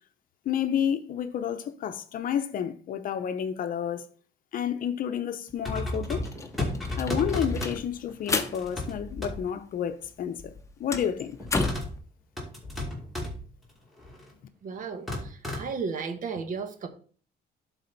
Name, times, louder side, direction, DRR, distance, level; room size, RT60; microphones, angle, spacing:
voice 1, 0.4-4.1 4.5-6.3 7.0-10.5 10.8-11.4, left 9 dB, 50° left, 0.7 m, -30 dB
sound 1, 5.5-5.6 5.8-9.8 10.0-12.0, left 3 dB, 15° left, 0.9 m, -33 dB
sound 2, 5.6-7.8 8.3-8.9 9.2-9.3 11.4-11.9 12.4-13.4 14.0-14.3 15.1-15.6, left 1 dB, ahead, 2.2 m, -32 dB
voice 2, 14.6-16.9, right 5 dB, 50° right, 1.2 m, -34 dB
11.5 x 4.1 x 4.0 m
cardioid pair, 135°, 18 cm